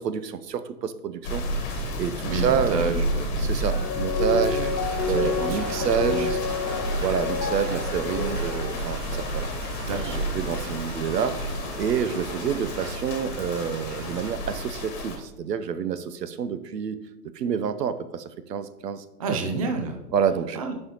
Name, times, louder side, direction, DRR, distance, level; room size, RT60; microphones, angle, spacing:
voice 1, 0.0-1.4 1.7-3.0 3.4-4.6 5.1-6.3 7.0-9.7 10.3-11.4 11.8-17.0 17.3-19.4 20.1-20.6, right 7 dB, 80° right, 12 dB, 0.8 m, -28 dB
sound 1, 1.2-15.2, equal, 30° left, 1.5 m, -31 dB
voice 2, 2.3-3.3 3.7-3.8 4.3-4.7 5.1-6.4 6.7-6.8 9.8-10.3 19.2-20.0 20.5-20.7, right 3 dB, 25° right, 4 dB, 0.4 m, -30 dB
sound 2, 3.7-8.8, left 6 dB, 80° left, 0.9 m, -29 dB
sound 3, 4.6-14.4, right 2 dB, 45° right, 1.7 m, -39 dB
9.3 x 5.5 x 2.9 m, 0.98 s
hypercardioid pair, 130°, 48 cm